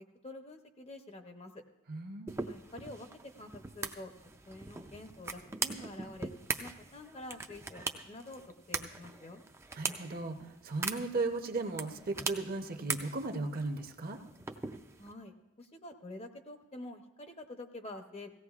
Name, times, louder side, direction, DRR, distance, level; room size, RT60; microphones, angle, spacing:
voice 1, 0.2-1.5 2.4-3.1 3.4-3.5 3.7-4.1 4.5-6.3 6.6-8.4 8.7-9.4 15.0-18.3, left 2 dB, 25° left, 6 dB, 0.6 m, -47 dB
voice 2, 1.9-2.3 9.7-14.2, right 3 dB, 40° right, 5 dB, 0.7 m, -36 dB
sound 1, 2.3-15.1, right 4 dB, 10° right, 0.4 m, -41 dB
17.5 x 16.0 x 2.4 m, 1.0 s
head